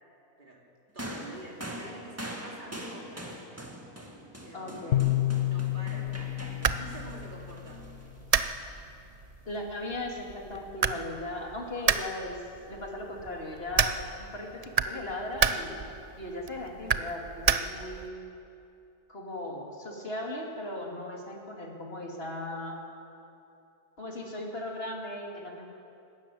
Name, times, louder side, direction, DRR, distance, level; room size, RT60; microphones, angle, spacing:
voice 1, 0.9-3.5 4.4-5.1 5.4-7.8, right 2 dB, 30° right, -2 dB, 3.4 m, -47 dB
sound 1, 1.0-8.5 9.5-9.6, equal, 10° right, 1.8 m, -43 dB
voice 2, 4.5-5.2 9.5-12.4 12.7-14.0 14.3-15.9 16.2-18.2 19.1-22.8 24.0-25.7, left 1 dB, 40° left, 0 dB, 2.9 m, -37 dB
sound 2, 4.9-8.2, left 15 dB, 60° left, 1.0 m, -30 dB
sound 3, 6.1-18.1, right 6 dB, 75° right, 0.3 m, -32 dB
22.0 x 13.0 x 9.3 m, 2.7 s
omnidirectional pair, 1.6 m